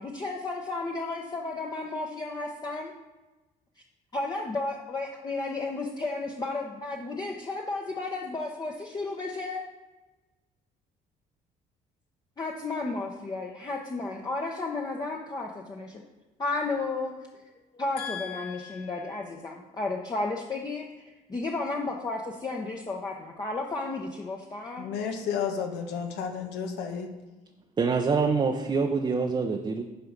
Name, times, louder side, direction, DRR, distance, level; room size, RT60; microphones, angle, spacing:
voice 1, 0.0-2.9 4.1-9.6 12.4-16.0 16.4-17.1 17.7-24.9, left 3 dB, 25° left, -1 dB, 0.9 m, -33 dB
voice 2, 18.0-19.2 24.8-27.1, left 7 dB, 85° left, 3 dB, 1.5 m, -33 dB
voice 3, 27.8-29.8, right 4 dB, 25° right, 3 dB, 0.7 m, -25 dB
11.0 x 4.7 x 5.2 m, 1.1 s
cardioid pair, 110°, 17 cm